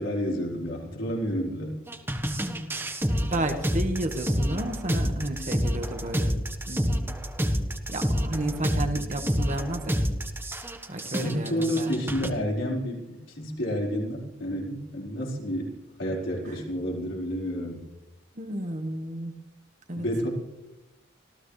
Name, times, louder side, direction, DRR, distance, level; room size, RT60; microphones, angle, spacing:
voice 1, 0.0-1.8 11.2-17.8 20.0-20.3, equal, 75° left, -2 dB, 4.6 m, -30 dB
sound 1, 1.9-12.3, equal, 10° right, 1.3 m, -28 dB
voice 2, 3.2-6.3 6.7-7.1 7.9-9.9 10.9-12.1 16.5-16.6 18.4-19.3 19.9-20.1, right 1 dB, 40° right, 6 dB, 1.6 m, -32 dB
26.0 x 16.0 x 3.3 m, 0.97 s
head